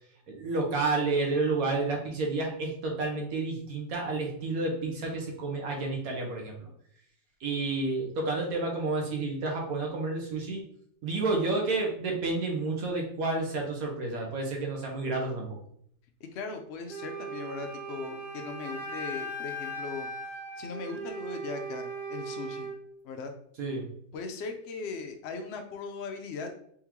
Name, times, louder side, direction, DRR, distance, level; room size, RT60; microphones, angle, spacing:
voice 1, 0.3-6.7 7.4-10.6 11.0-15.6 23.6-23.8, right 3 dB, 60° right, 0 dB, 1.3 m, -30 dB
voice 2, 16.3-20.1 20.6-22.7 23.0-23.3 24.1-26.5, left 4 dB, 80° left, 5 dB, 0.6 m, -38 dB
Wind instrument woodwind instrument, 16.9-22.8, right 1 dB, 85° right, 1.6 m, -38 dB
3.6 x 3.5 x 3.0 m, 0.69 s
omnidirectional pair, 1.7 m